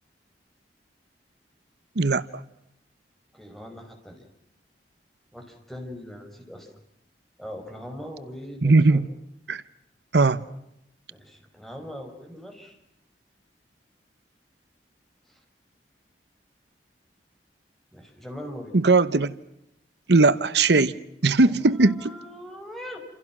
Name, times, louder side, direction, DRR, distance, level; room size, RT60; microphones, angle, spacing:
voice 1, 3.3-4.3 5.3-6.7 7.4-9.0 11.1-12.8 15.3-15.4 17.9-18.7 21.4-23.0, equal, ahead, 5.7 m, -41 dB
voice 2, 8.6-9.1 9.5-9.6 10.1-10.4 18.7-19.3 20.1-20.9 21.2-22.1, right 3 dB, 75° right, 0.9 m, -19 dB
29.0 x 28.5 x 6.1 m
head